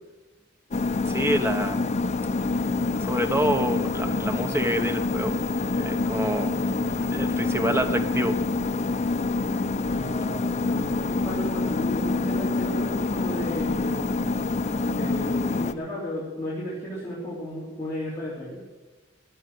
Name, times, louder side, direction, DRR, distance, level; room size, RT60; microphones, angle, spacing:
sound 1, 0.7-15.7, left 3 dB, 35° left, 0.5 m, -26 dB
voice 1, 1.1-1.8 2.4-2.5 2.9-5.4 5.7-8.4 10.2-10.3, equal, 15° right, 6 dB, 1.1 m, -27 dB
voice 2, 9.8-14.0 14.8-18.7, equal, 15° left, -9 dB, 3.3 m, -34 dB
16.0 x 7.4 x 7.7 m, 1.2 s
head